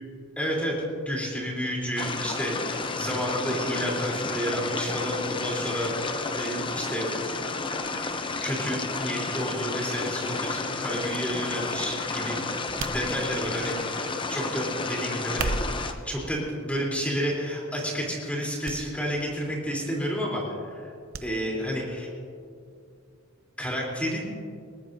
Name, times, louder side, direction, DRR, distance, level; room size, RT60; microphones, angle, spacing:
voice 1, 0.4-0.8 1.1-5.9 6.3-7.1 7.8-12.4 12.8-15.6 16.0-20.9 21.2-22.1 23.6-24.3, equal, 5° left, -3 dB, 3.5 m, -30 dB
sound 1, 2.0-15.9, left 3 dB, 25° left, 0.7 m, -31 dB
sound 2, 12.8-13.6 15.2-15.9 16.7-17.1 17.5-17.6 18.6-18.8 19.1-19.2 21.1-21.3 21.6-21.7, right 3 dB, 65° right, 0.7 m, -33 dB
21.5 x 18.5 x 2.7 m, 2.3 s
head